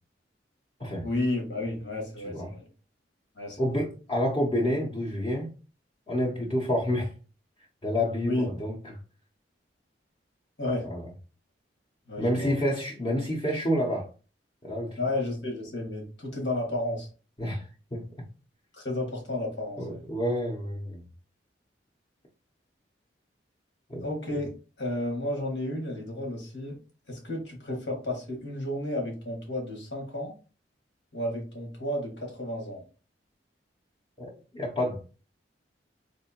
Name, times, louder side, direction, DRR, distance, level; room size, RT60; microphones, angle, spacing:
voice 1, 1.0-2.7 3.4-3.8 8.2-8.5 10.6-10.8 12.1-12.6 15.0-17.1 18.7-20.0 24.0-24.5 24.8-26.8 27.1-30.3 31.1-32.8, left 1 dB, 85° left, 1.6 m, -32 dB
voice 2, 3.6-5.5 6.1-7.1 7.8-8.9 10.8-11.0 12.2-14.1 14.6-15.0 17.4-17.6 17.9-18.0 19.8-21.0 23.9-24.0 34.5-35.0, equal, 30° left, 0.8 m, -28 dB
3.7 x 3.0 x 2.9 m
head